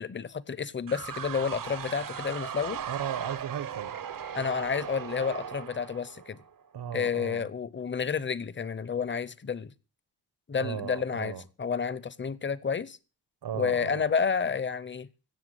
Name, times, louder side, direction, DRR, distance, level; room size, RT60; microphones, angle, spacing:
voice 1, 0.0-2.8 4.3-6.4 6.9-9.7 10.5-13.0 13.5-15.1, left 6 dB, 30° left, 0.7 m, -30 dB
sound 1, 0.9-6.6, right 8 dB, 60° right, 0.7 m, -38 dB
voice 2, 2.9-3.9 6.7-7.5 10.6-11.4 13.4-14.1, right 9 dB, 85° right, 1.3 m, -36 dB
17.0 x 6.9 x 8.1 m
wide cardioid pair, 135°, 38 cm